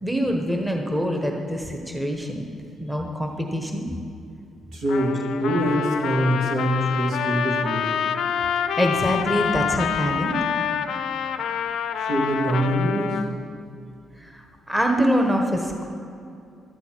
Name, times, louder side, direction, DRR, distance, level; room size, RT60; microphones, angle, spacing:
voice 1, 0.0-2.5 2.8-3.8 8.8-10.4 14.2-15.9, equal, 5° right, 2 dB, 1.2 m, -24 dB
voice 2, 4.7-7.9 12.0-13.1, equal, 75° right, -1 dB, 2.2 m, -24 dB
Trumpet, 4.9-13.3, left 8 dB, 75° left, 0.5 m, -27 dB
12.5 x 9.5 x 4.6 m, 2.5 s
cardioid pair, 90°, 0 cm